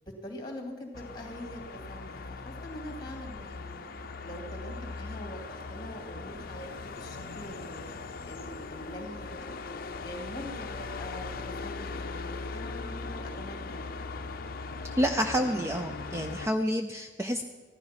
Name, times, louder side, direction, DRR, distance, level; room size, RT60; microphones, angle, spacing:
voice 1, 0.0-3.8 4.2-7.9 8.2-9.5 10.0-14.0, equal, 20° left, 2 dB, 2.3 m, -43 dB
sound 1, 0.9-16.5, left 3 dB, 45° left, 0.6 m, -39 dB
voice 2, 15.0-17.4, equal, 15° right, 6 dB, 0.4 m, -29 dB
15.0 x 12.0 x 5.8 m, 1.4 s
head